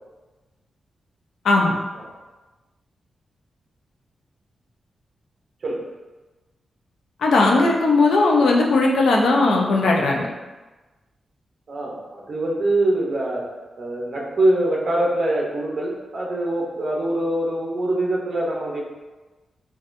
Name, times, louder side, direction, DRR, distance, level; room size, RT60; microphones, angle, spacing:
voice 1, 7.2-10.3, left 3 dB, 80° left, 0 dB, 0.5 m, -17 dB
voice 2, 11.7-13.5 13.8-18.8, right 1 dB, 50° right, -2 dB, 0.7 m, -23 dB
4.0 x 2.3 x 2.5 m, 1.2 s
wide cardioid pair, 125°, 0 cm